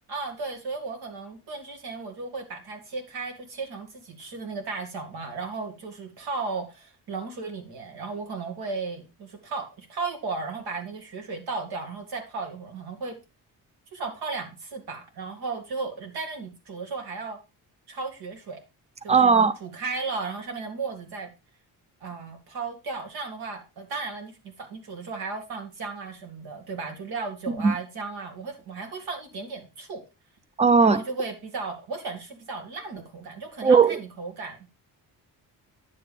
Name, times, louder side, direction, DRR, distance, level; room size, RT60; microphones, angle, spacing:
voice 1, 0.1-13.2 13.9-17.4 17.9-18.6 19.0-21.3 22.0-30.0 30.8-34.7, right 4 dB, 80° right, 2.3 m, -35 dB
voice 2, 19.1-19.6 27.6-27.7 30.6-31.0 33.6-34.0, right 5 dB, 20° right, 0.4 m, -17 dB
9.7 x 7.7 x 3.4 m
cardioid pair, 115°, 38 cm